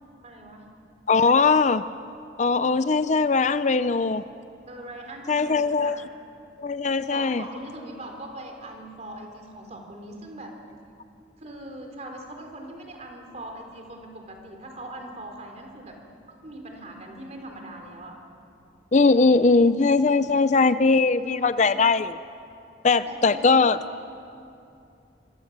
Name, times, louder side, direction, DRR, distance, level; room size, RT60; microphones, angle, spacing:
voice 1, 0.2-0.6 4.7-5.9 7.1-10.5 11.4-15.9 16.3-18.1 21.2-21.7 23.0-23.7, right 1 dB, 40° right, 2 dB, 4.2 m, -41 dB
voice 2, 1.1-1.8 2.4-4.2 5.3-6.0 6.6-7.4 18.9-22.2 22.8-23.8, left 4 dB, 40° left, 13 dB, 0.5 m, -20 dB
25.5 x 25.0 x 7.5 m, 2.6 s
head